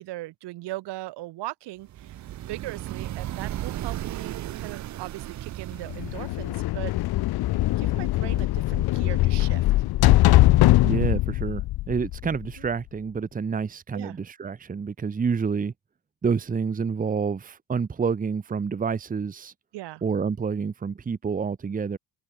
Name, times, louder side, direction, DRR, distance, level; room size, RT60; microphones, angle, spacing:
voice 1, 0.0-2.2 2.5-6.9 7.8-9.6 12.6-12.7 13.9-14.2 19.7-20.0, right 17 dB, 80° right, 4.3 m, -38 dB
sound 1, 1.9-6.6, right 13 dB, 45° right, 0.8 m, -35 dB
sound 2, 5.9-12.7, left 17 dB, 65° left, 1.1 m, -21 dB
voice 2, 10.8-15.7 16.2-19.5 20.0-22.0, right 5 dB, 20° right, 1.3 m, -28 dB
cardioid pair, 155°, 41 cm